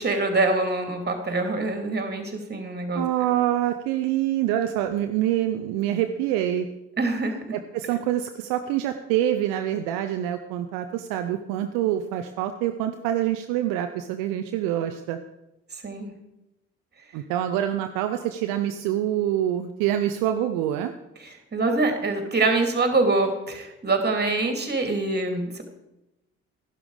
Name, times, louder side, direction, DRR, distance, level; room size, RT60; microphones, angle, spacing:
voice 1, 0.0-3.1 7.0-7.4 15.7-16.1 21.2-25.6, right 3 dB, 25° right, 5 dB, 2.8 m, -25 dB
voice 2, 2.9-6.7 7.5-15.2 17.1-20.9, right 12 dB, 65° right, 7 dB, 0.8 m, -26 dB
12.0 x 11.5 x 5.0 m, 0.92 s
figure-of-eight pair, 45°, 36 cm